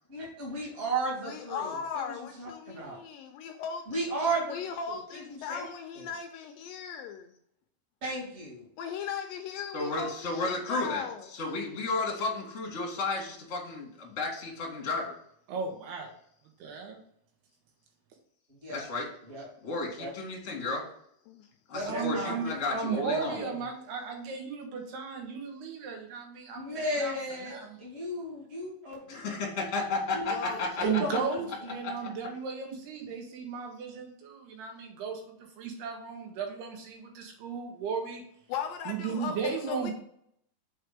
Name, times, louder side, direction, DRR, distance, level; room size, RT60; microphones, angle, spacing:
voice 1, 0.1-1.8 2.1-3.0 3.9-4.6 4.9-5.7 6.0-6.1 8.0-8.7 18.6-18.8 19.3-19.5 20.0-20.1 21.7-22.4 23.4-23.6 26.5-27.5 27.8-29.3 30.1-30.3 30.8-31.2 31.6-31.7, right 1 dB, 20° right, -4 dB, 1.9 m, -34 dB
voice 2, 1.3-4.1 4.5-7.3 8.8-11.3 21.3-21.5 30.3-30.7 38.5-39.9, left 6 dB, 80° left, 5 dB, 2.1 m, -38 dB
voice 3, 9.7-15.1 18.7-19.1 19.6-20.8 21.7-23.4 29.1-30.3 30.6-30.8 31.8-31.9, left 3 dB, 30° left, -2 dB, 1.5 m, -33 dB
voice 4, 15.5-16.1 16.6-17.0 21.8-27.2 27.5-27.8 30.8-38.2 38.9-39.9, right 6 dB, 80° right, 2 dB, 3.3 m, -35 dB
6.8 x 4.6 x 5.1 m, 0.69 s
omnidirectional pair, 4.6 m